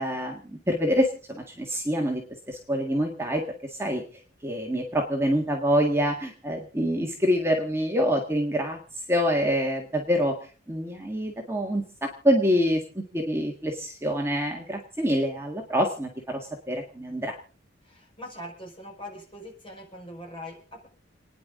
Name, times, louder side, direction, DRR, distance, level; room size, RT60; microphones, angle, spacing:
voice 1, 0.0-2.2 2.5-3.4 3.7-4.0 4.4-8.8 9.1-10.3 10.7-12.8 13.1-17.4, equal, 15° right, 1 dB, 1.7 m, -26 dB
voice 2, 17.8-20.9, left 1 dB, 30° left, 0 dB, 5.1 m, -42 dB
29.5 x 10.0 x 3.7 m, 0.38 s
head